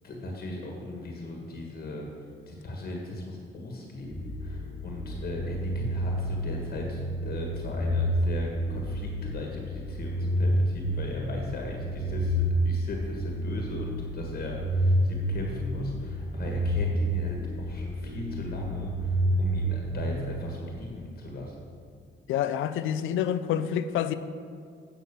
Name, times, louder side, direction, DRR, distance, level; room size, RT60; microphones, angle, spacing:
voice 1, 0.0-2.1 2.5-21.5, left 2 dB, 50° left, 0 dB, 1.6 m, -38 dB
sound 1, 4.1-20.9, equal, 20° left, 1.8 m, -29 dB
voice 2, 22.3-24.1, left 9 dB, 80° left, 12 dB, 0.5 m, -27 dB
8.7 x 5.8 x 6.9 m, 2.2 s
cardioid pair, 90°, 20 cm